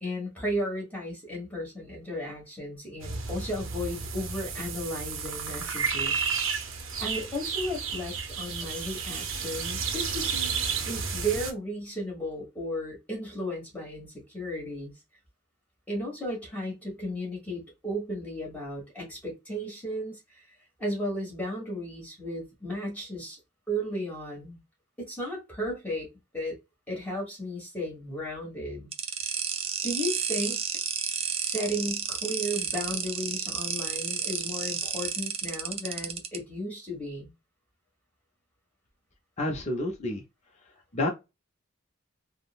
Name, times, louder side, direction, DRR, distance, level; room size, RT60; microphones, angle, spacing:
voice 1, 0.0-6.2 7.0-10.5 10.9-14.9 15.9-20.4 20.8-23.4 23.7-24.6 25.0-26.1 26.3-26.6 26.9-28.9 29.8-30.6 31.4-37.3, equal, 10° left, 1.3 m, -34 dB
sound 1, 3.0-11.5, right 6 dB, 70° right, 0.6 m, -32 dB
sound 2, 28.9-36.4, right 7 dB, 30° right, 0.4 m, -31 dB
voice 2, 39.4-40.2 40.9-41.1, left 1 dB, 35° left, 0.6 m, -29 dB
3.5 x 2.0 x 2.3 m
head